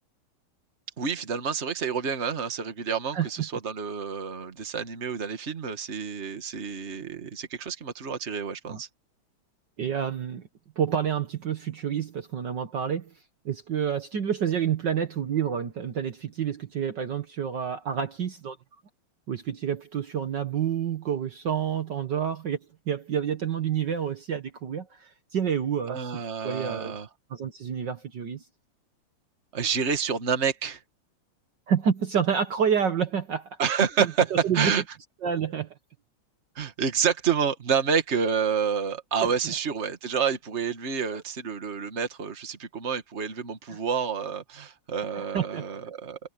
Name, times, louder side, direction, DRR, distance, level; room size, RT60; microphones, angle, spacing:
voice 1, 1.0-8.9 25.9-27.1 29.5-30.8 33.6-34.3 34.5-34.8 36.6-46.2, right 6 dB, 35° right, 1.9 m, -28 dB
voice 2, 9.8-10.4 10.8-13.1 13.5-18.6 19.3-22.6 22.9-26.0 26.4-27.0 27.3-28.4 31.7-33.6 34.4-34.7 35.2-35.7 39.2-39.3 41.1-41.2 43.7-43.8 45.2-45.6, right 8 dB, 55° right, 1.8 m, -28 dB
omnidirectional pair, 2.4 m